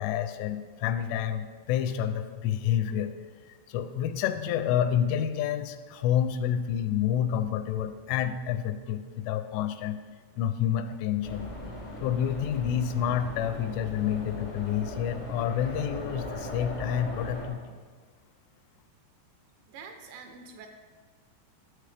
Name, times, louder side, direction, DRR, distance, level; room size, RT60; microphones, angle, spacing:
voice 1, 0.0-3.1 3.7-10.0 10.4-11.5 12.0-17.6, left 9 dB, 85° left, 10 dB, 3.0 m, -29 dB
sound 1, 11.2-17.5, left 1 dB, 70° left, 0.7 m, -39 dB
voice 2, 19.7-20.7, right 5 dB, 80° right, 4 dB, 2.8 m, -45 dB
12.5 x 7.9 x 3.3 m, 1.5 s
omnidirectional pair, 5.5 m